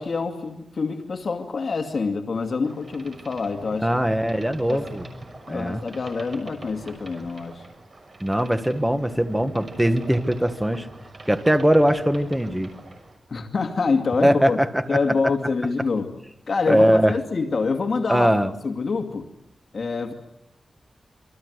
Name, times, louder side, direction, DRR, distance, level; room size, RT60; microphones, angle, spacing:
voice 1, 0.0-3.9 4.7-4.8 5.5-7.6 13.3-14.6 14.9-16.1 16.5-18.3 18.6-19.3 19.7-20.1, left 4 dB, 55° left, 4 dB, 2.3 m, -26 dB
Boat Water vehicle, 2.6-13.2, right 2 dB, 45° right, 6.1 m, -42 dB
voice 2, 3.8-5.0 5.5-5.8 8.2-10.9 11.2-12.7 14.2-15.0 16.7-17.1 18.1-18.5, equal, 10° right, 9 dB, 1.5 m, -21 dB
27.5 x 24.0 x 8.1 m, 0.82 s
wide cardioid pair, 105°, 0 cm